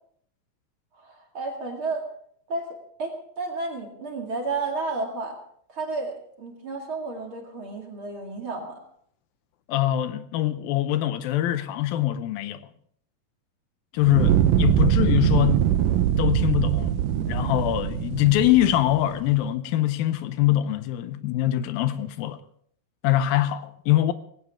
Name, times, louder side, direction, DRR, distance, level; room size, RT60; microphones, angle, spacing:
voice 1, 1.0-2.1 2.5-5.4 5.7-8.8 14.8-15.0, right 3 dB, 40° right, 2.7 m, -32 dB
voice 2, 9.7-12.7 13.9-15.6 16.2-22.4 23.0-24.1, left 13 dB, 80° left, 2.5 m, -23 dB
Fire, 14.0-19.2, right 11 dB, 75° right, 2.3 m, -22 dB
19.0 x 16.5 x 3.6 m
omnidirectional pair, 4.3 m